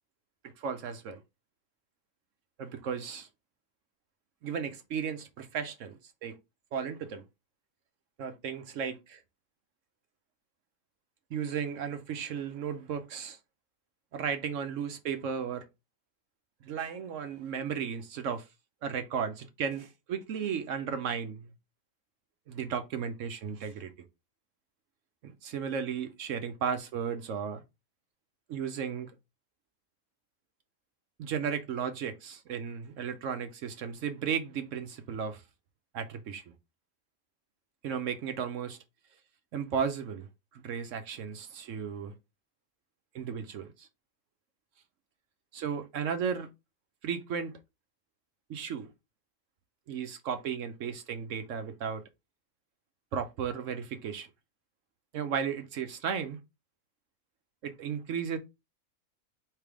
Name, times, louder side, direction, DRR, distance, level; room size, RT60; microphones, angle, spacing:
voice 1, 0.4-1.2 2.6-3.3 4.4-6.4 6.7-7.2 8.2-9.2 11.3-13.4 14.1-15.6 16.6-18.5 18.8-21.5 22.5-23.9 25.2-27.6 28.5-29.1 31.2-35.4 35.9-36.4 37.8-38.8 39.5-42.1 43.1-43.9 45.5-46.5 47.0-47.5 48.5-48.9 49.9-52.0 53.1-54.3 55.1-56.4 57.6-58.4, right 7 dB, 70° right, 0.9 m, -35 dB
3.4 x 3.2 x 4.7 m
omnidirectional pair, 1.5 m